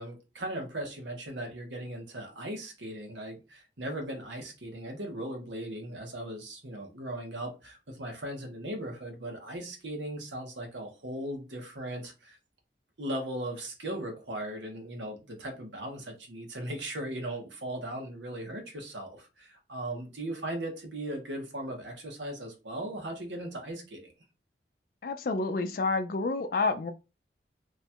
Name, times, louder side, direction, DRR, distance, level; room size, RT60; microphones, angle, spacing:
voice 1, 0.0-12.4 13.0-24.1, right 1 dB, 90° right, 1.1 m, -38 dB
voice 2, 25.0-26.9, left 3 dB, 50° left, 0.4 m, -29 dB
3.0 x 2.4 x 4.2 m
head